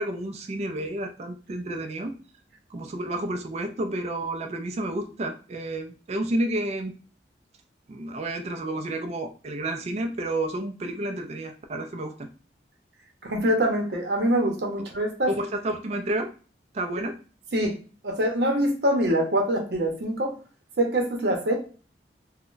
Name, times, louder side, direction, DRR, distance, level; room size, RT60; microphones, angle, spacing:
voice 1, 0.0-2.1 2.7-6.9 7.9-12.3 15.2-16.3 16.7-17.2, right 1 dB, 35° right, 5 dB, 0.3 m, -30 dB
voice 2, 13.2-15.3 17.5-17.7 18.0-20.3 20.8-21.6, right 1 dB, 65° right, 2 dB, 0.7 m, -24 dB
2.5 x 2.1 x 3.7 m, 0.38 s
head